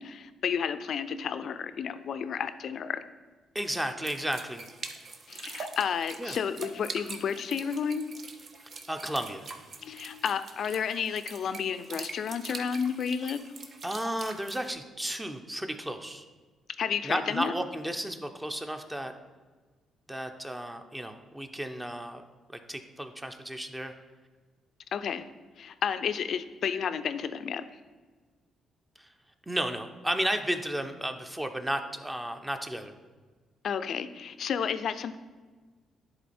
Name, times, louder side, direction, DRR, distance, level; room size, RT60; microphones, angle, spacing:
voice 1, 0.0-3.0 5.3-8.2 9.8-13.4 16.8-17.5 24.9-25.3 25.6-27.6 33.6-35.2, left 7 dB, 60° left, 11 dB, 0.5 m, -31 dB
voice 2, 3.5-4.6 6.2-6.3 8.9-9.4 13.8-16.2 17.0-19.1 20.1-22.2 22.5-23.9 29.0-29.1 29.5-32.9, right 1 dB, 10° right, 6 dB, 0.7 m, -33 dB
sound 1, 4.0-14.7, right 4 dB, 50° right, 0.8 m, -44 dB
10.5 x 3.9 x 4.3 m, 1.4 s
cardioid pair, 90°, 0 cm